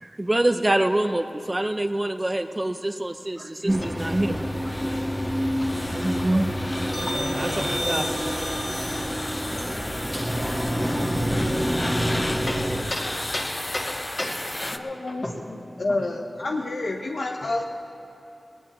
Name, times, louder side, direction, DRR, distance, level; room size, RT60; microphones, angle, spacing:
voice 1, 0.0-4.4 5.9-6.5 7.4-8.1, right 1 dB, 20° right, 7 dB, 0.5 m, -25 dB
sound 1, 3.7-12.8, equal, ahead, 1.4 m, -27 dB
sound 2, 4.0-14.8, left 1 dB, 20° left, 0.6 m, -34 dB
voice 2, 7.0-7.7 12.5-15.4 15.9-16.0, left 1 dB, 45° left, -3 dB, 2.5 m, -33 dB
voice 3, 14.7-15.2 15.5-17.6, left 2 dB, 65° left, 1 dB, 0.8 m, -29 dB
19.5 x 19.0 x 3.0 m, 2.9 s
wide cardioid pair, 90°, 0 cm